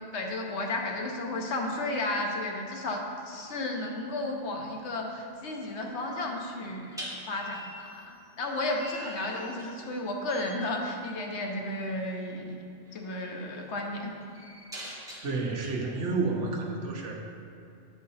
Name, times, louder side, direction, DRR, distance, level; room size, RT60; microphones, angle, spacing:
voice 1, 0.1-12.6 12.9-14.1, left 2 dB, 70° left, 1 dB, 1.1 m, -33 dB
sound 1, 4.3-4.6 6.9-10.0 10.3-10.7 12.2-12.4 12.8-15.7, equal, 5° right, 1.3 m, -45 dB
voice 2, 15.2-17.2, right 3 dB, 80° right, 0 dB, 1.2 m, -30 dB
8.5 x 4.8 x 4.1 m, 2.5 s
omnidirectional pair, 1.2 m